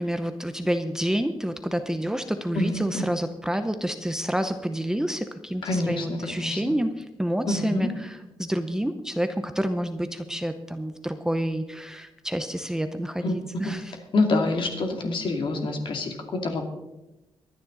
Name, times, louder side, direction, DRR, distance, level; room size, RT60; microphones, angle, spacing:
voice 1, 0.0-13.9, equal, 5° right, 8 dB, 0.7 m, -28 dB
voice 2, 2.6-3.1 5.6-6.6 7.5-7.9 13.2-13.3 13.6-13.8 14.1-16.6, left 2 dB, 60° left, 3 dB, 2.6 m, -26 dB
24.0 x 9.7 x 4.0 m, 1.0 s
wide cardioid pair, 125°, 10 cm